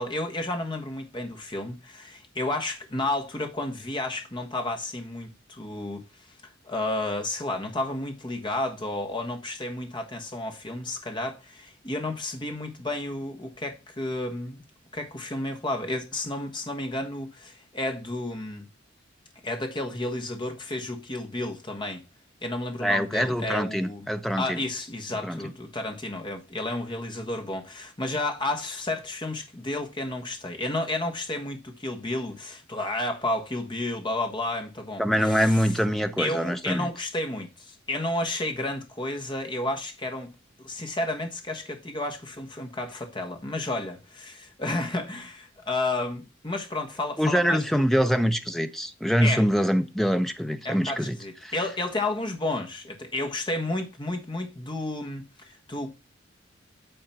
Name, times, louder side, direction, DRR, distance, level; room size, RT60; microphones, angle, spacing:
voice 1, 0.0-14.6 14.9-18.7 19.4-22.0 22.4-24.1 24.4-35.7 36.2-40.3 40.6-47.9 49.2-49.4 50.6-55.9, left 2 dB, 25° left, 1.3 m, -32 dB
voice 2, 22.8-24.6 25.2-25.5 35.0-36.9 47.2-51.2 51.4-51.5, equal, ahead, 0.7 m, -24 dB
8.9 x 3.8 x 5.7 m
head